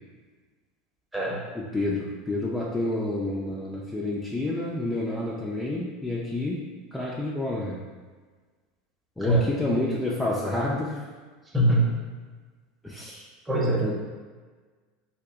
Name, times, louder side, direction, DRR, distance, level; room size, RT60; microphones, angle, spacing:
voice 1, 1.5-6.6 6.9-7.8 9.2-11.0 12.8-13.3 13.7-13.9, left 2 dB, 10° left, -5 dB, 0.5 m, -29 dB
voice 2, 11.5-12.0 13.5-13.9, right 1 dB, 15° right, -3 dB, 0.9 m, -22 dB
2.7 x 2.3 x 3.8 m, 1.4 s
hypercardioid pair, 80°, 0 cm